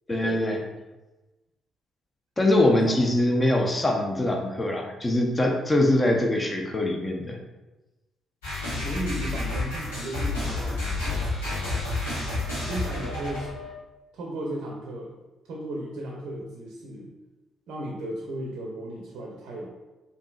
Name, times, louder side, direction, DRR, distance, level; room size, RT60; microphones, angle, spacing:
voice 1, 0.1-0.6 2.4-7.4, left 1 dB, 20° left, 1 dB, 0.6 m, -23 dB
voice 2, 2.6-3.0 3.4-3.5 8.8-10.9 12.7-13.5 14.1-15.1 15.4-17.1 17.7-19.7, right 1 dB, 60° right, -1 dB, 0.5 m, -35 dB
sound 1, 8.4-13.7, left 2 dB, 75° left, 1.0 m, -30 dB
4.7 x 2.7 x 2.4 m, 1.1 s
figure-of-eight pair, 40°, 0 cm